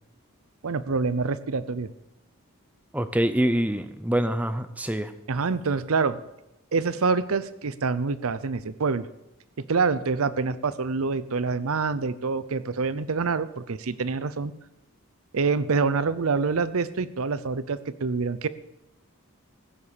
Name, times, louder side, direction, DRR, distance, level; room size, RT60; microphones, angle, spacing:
voice 1, 0.6-1.9 5.3-6.2 6.7-9.1 9.6-14.5 15.3-18.5, right 4 dB, 75° right, 15 dB, 0.6 m, -26 dB
voice 2, 2.9-5.1, right 1 dB, 5° right, 11 dB, 0.6 m, -25 dB
15.5 x 7.1 x 6.8 m, 0.90 s
head